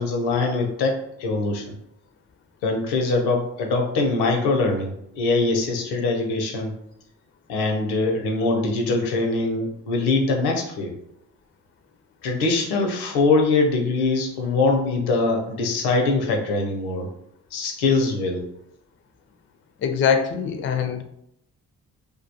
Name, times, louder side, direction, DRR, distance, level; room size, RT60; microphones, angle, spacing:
voice 1, 0.0-1.8 2.6-6.7 7.5-10.9 12.2-17.1 17.5-18.4, left 3 dB, 85° left, 2 dB, 0.6 m, -23 dB
voice 2, 19.8-21.0, left 7 dB, 35° left, 7 dB, 0.4 m, -22 dB
2.2 x 2.2 x 2.7 m, 0.75 s
hypercardioid pair, 45°, 38 cm